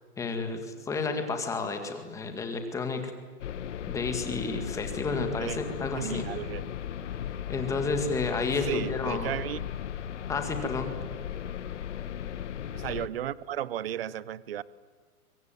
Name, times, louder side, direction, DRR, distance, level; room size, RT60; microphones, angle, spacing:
voice 1, 0.2-3.1 3.9-6.3 7.5-9.3 10.3-10.9, left 4 dB, 5° left, 6 dB, 1.9 m, -31 dB
sound 1, 3.4-13.1, left 9 dB, 50° left, 1.4 m, -36 dB
voice 2, 6.0-6.7 8.7-9.7 12.7-14.6, right 10 dB, 40° right, 20 dB, 0.7 m, -34 dB
25.0 x 23.0 x 9.1 m, 1.5 s
hypercardioid pair, 160°, 45 cm